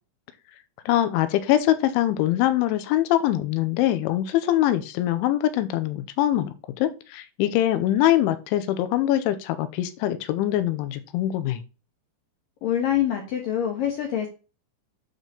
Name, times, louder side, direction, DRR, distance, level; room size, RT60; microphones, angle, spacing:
voice 1, 0.9-11.6, left 13 dB, 90° left, 12 dB, 3.1 m, -23 dB
voice 2, 12.6-14.3, left 10 dB, 65° left, 2 dB, 2.3 m, -25 dB
9.1 x 3.9 x 6.7 m, 0.33 s
omnidirectional pair, 5.5 m